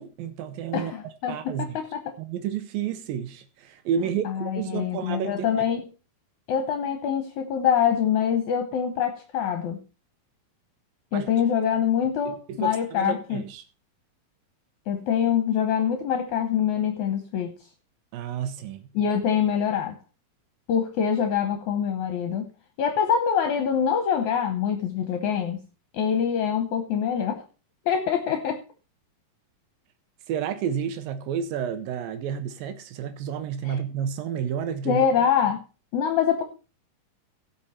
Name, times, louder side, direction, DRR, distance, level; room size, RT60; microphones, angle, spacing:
voice 1, 0.0-0.9 1.3-1.8 2.2-5.5 11.1-11.3 12.3-13.6 18.1-18.9 30.3-35.1, right 8 dB, 80° right, 2.5 m, -31 dB
voice 2, 0.7-2.1 4.3-5.8 6.5-9.8 11.1-13.4 14.9-17.5 19.0-20.0 20.7-22.5 22.8-25.6 25.9-27.4 27.9-28.6 33.7-33.8 34.9-35.6 35.9-36.4, left 8 dB, 70° left, 2.1 m, -25 dB
16.5 x 5.7 x 4.2 m
omnidirectional pair, 4.0 m